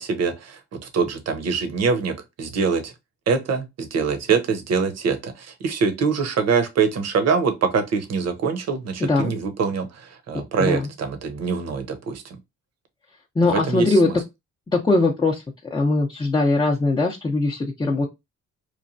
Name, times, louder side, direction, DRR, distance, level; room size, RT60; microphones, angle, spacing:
voice 1, 0.0-2.9 3.3-12.2 13.4-14.1, right 5 dB, 60° right, 0.8 m, -24 dB
voice 2, 9.0-9.3 10.6-10.9 13.4-14.1 14.7-15.4 15.7-18.1, left 2 dB, 15° left, 0.5 m, -20 dB
3.1 x 2.2 x 2.5 m
cardioid pair, 90°, 30 cm